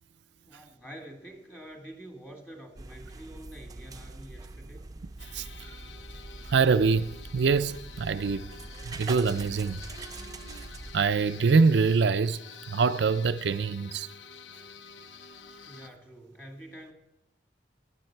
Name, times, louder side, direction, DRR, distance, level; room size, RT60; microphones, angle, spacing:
voice 1, 0.4-4.9 15.7-16.9, right 1 dB, 10° left, 1.6 m, -47 dB
sound 1, 2.8-11.0, right 2 dB, 20° right, 0.6 m, -43 dB
sound 2, 5.2-15.9, left 5 dB, 80° left, 0.7 m, -48 dB
voice 2, 6.5-8.5 8.8-9.8 10.9-12.4 12.7-14.1, right 4 dB, 65° right, 0.4 m, -24 dB
17.0 x 10.5 x 4.5 m
head